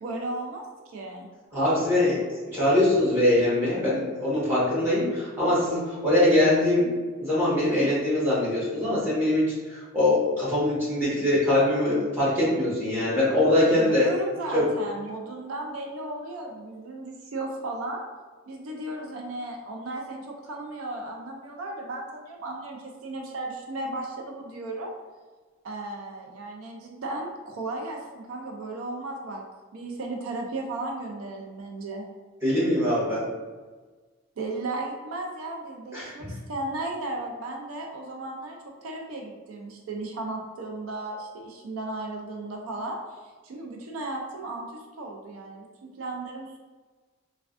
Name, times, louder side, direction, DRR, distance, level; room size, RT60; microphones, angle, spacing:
voice 1, 0.0-1.3 13.8-18.0 18.5-24.9 25.6-29.4 29.7-32.0 34.4-46.6, right 2 dB, 85° right, 1 dB, 0.4 m, -35 dB
voice 2, 1.5-6.9 7.2-9.4 9.7-14.0 14.5-14.6 32.4-33.2 35.9-36.3, left 1 dB, 10° right, -10 dB, 1.1 m, -23 dB
3.3 x 2.2 x 2.4 m, 1.4 s
head